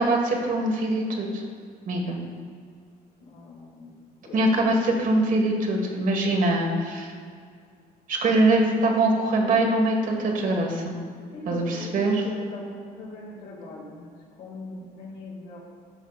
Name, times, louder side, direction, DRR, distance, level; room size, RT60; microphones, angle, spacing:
voice 1, 0.0-1.4 1.9-2.2 4.3-7.1 8.1-10.9 11.5-12.2, right 2 dB, 55° right, 1 dB, 1.6 m, -23 dB
voice 2, 3.2-3.9 4.3-4.5 11.3-14.1 14.4-15.6, left 2 dB, 70° left, -7 dB, 2.0 m, -40 dB
14.0 x 5.6 x 2.4 m, 2.1 s
cardioid pair, 110°, 17 cm